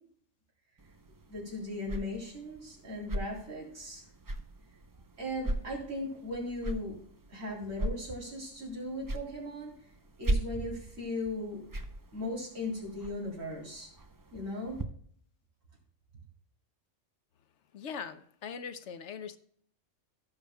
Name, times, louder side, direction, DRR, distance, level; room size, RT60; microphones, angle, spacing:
sound 1, 0.8-14.8, right 1 dB, 30° right, 0.4 m, -39 dB
voice 1, 1.3-4.0 5.2-7.0 7.3-9.7 10.2-11.6 12.1-13.9 14.3-14.8, left 1 dB, 85° right, 3.9 m, -37 dB
voice 2, 17.7-19.4, left 6 dB, 70° left, 0.9 m, -41 dB
16.5 x 6.9 x 2.2 m
omnidirectional pair, 1.3 m